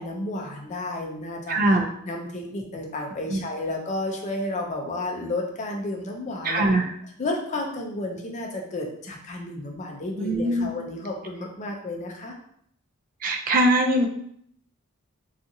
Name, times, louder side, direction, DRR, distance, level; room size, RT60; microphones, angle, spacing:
voice 1, 0.0-1.6 2.1-6.6 7.2-12.3, left 2 dB, 35° left, 1 dB, 0.4 m, -32 dB
voice 2, 1.5-1.9 3.3-3.4 6.4-6.9 10.2-10.7 13.2-14.1, right 1 dB, 40° right, 3 dB, 0.4 m, -21 dB
2.7 x 2.4 x 2.6 m, 0.69 s
head